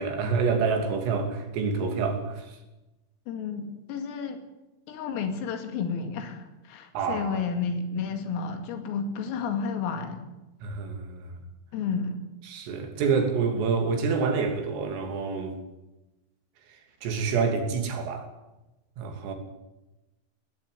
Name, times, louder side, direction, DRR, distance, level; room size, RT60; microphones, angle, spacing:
voice 1, 0.0-2.6 7.0-7.4 10.6-11.2 12.5-15.6 17.0-18.3 19.0-19.3, right 5 dB, 80° right, 4 dB, 5.5 m, -27 dB
voice 2, 3.3-4.4 4.9-10.2 11.7-12.2, left 5 dB, 85° left, 6 dB, 5.0 m, -31 dB
18.5 x 14.5 x 9.6 m, 1.0 s
omnidirectional pair, 5.8 m